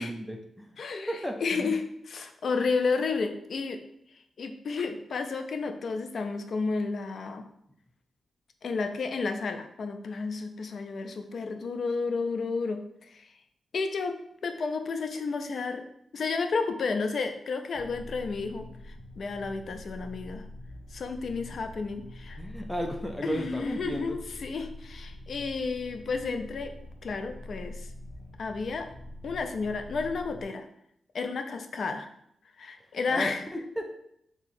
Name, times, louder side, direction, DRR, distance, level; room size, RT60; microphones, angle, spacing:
voice 1, 0.0-0.7 1.1-1.7 22.4-24.2 33.1-34.0, equal, 5° left, 3 dB, 0.5 m, -34 dB
voice 2, 0.8-3.8 4.4-7.5 8.6-13.3 13.7-14.2 14.4-15.9 16.1-20.5 20.9-22.4 23.2-26.7 27.0-27.9 28.4-28.9 29.2-30.7 31.1-32.1 32.6-33.4, left 4 dB, 60° left, 7 dB, 0.5 m, -32 dB
sound 1, 17.7-30.4, left 1 dB, 70° right, 1.1 m, -45 dB
3.6 x 2.9 x 4.1 m, 0.74 s
cardioid pair, 95°, 0 cm